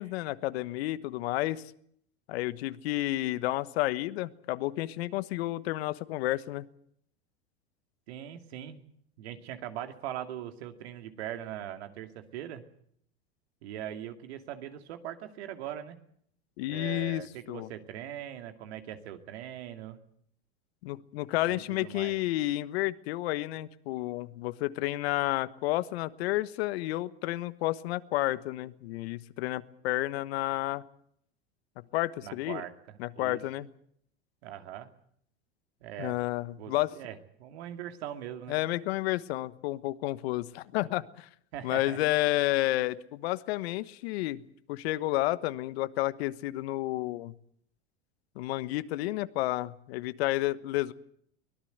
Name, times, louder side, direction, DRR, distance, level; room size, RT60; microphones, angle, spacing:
voice 1, 0.0-1.6 2.3-6.7 16.6-17.2 17.5-17.7 20.8-30.8 31.9-32.6 33.0-33.7 36.0-36.9 38.5-41.3 41.6-44.4 44.7-47.3 48.3-50.9, left 17 dB, 70° left, 14 dB, 1.3 m, -31 dB
voice 2, 8.1-8.8 9.2-12.6 13.6-16.0 16.7-20.0 21.4-22.2 32.2-33.7 34.4-34.9 35.8-36.2 36.5-38.6 41.5-42.0, right 11 dB, 75° right, 7 dB, 2.5 m, -41 dB
24.0 x 18.0 x 8.0 m, 0.67 s
hypercardioid pair, 105°, 32 cm